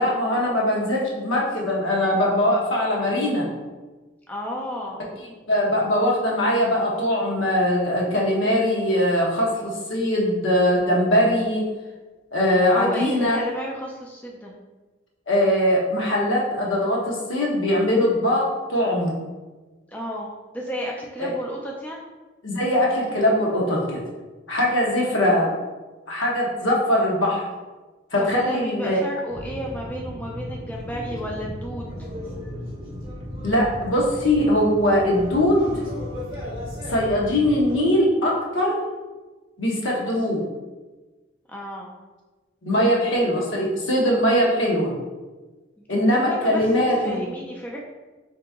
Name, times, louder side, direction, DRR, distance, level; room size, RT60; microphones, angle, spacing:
voice 1, 0.0-3.5 5.5-11.7 12.3-13.4 15.3-19.2 21.2-21.3 22.4-24.0 24.5-25.5 26.1-27.4 28.1-29.0 33.4-35.7 36.9-38.8 39.6-40.4 42.6-44.9 45.9-47.3, left 1 dB, 70° left, -3 dB, 1.0 m, -21 dB
voice 2, 4.3-5.0 12.7-14.5 19.9-22.0 28.2-31.9 41.5-41.9 45.8-47.8, equal, 10° left, -2 dB, 0.4 m, -32 dB
sound 1, 29.3-37.8, equal, 20° right, 1.2 m, -35 dB
3.6 x 2.9 x 3.5 m, 1.2 s
head